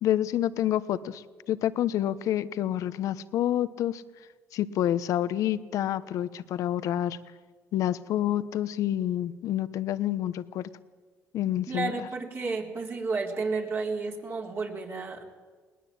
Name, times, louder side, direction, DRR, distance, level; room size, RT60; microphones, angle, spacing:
voice 1, 0.0-4.0 4.5-7.2 7.7-10.7 11.3-12.1, left 12 dB, 70° left, 15 dB, 1.0 m, -28 dB
voice 2, 11.7-15.2, right 4 dB, 45° right, 0 dB, 4.3 m, -32 dB
20.5 x 19.0 x 8.8 m, 1.4 s
supercardioid pair, 80°, 6 cm